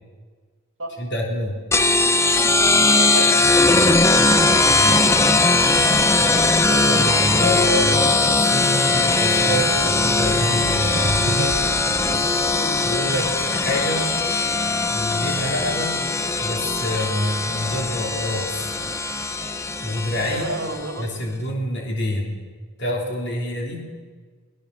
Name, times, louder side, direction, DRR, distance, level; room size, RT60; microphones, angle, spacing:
voice 1, 1.0-1.6 4.6-5.2 6.8-11.6 12.9-14.1 14.9-16.0 16.4-18.8 19.8-20.5 21.0-22.4 22.8-23.9, left 1 dB, 50° left, 0 dB, 3.3 m, -27 dB
sound 1, 1.7-20.9, left 3 dB, 10° left, 0.7 m, -19 dB
voice 2, 3.0-3.6 6.7-7.3 12.5-12.9 20.2-21.1, right 1 dB, 55° right, 4 dB, 2.6 m, -31 dB
sound 2, 8.4-16.2, right 3 dB, 75° right, 0.8 m, -35 dB
30.0 x 22.0 x 6.8 m, 1.5 s
head